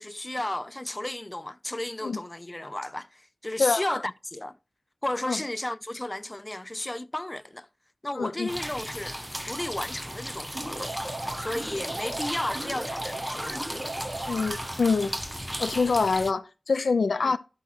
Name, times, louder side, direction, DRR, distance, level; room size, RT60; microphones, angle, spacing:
voice 1, 0.0-4.6 5.0-7.7 8.0-9.2 9.5-10.9 11.2-13.7 17.2-17.3, left 1 dB, 20° left, 0.3 m, -33 dB
voice 2, 8.1-8.5 14.3-15.1 15.6-17.4, left 4 dB, 80° left, 0.7 m, -25 dB
sound 1, 8.5-16.3, equal, 5° right, 0.7 m, -36 dB
sound 2, 10.5-14.9, right 1 dB, 35° right, 4.3 m, -36 dB
12.0 x 6.2 x 2.9 m
wide cardioid pair, 95°, 0 cm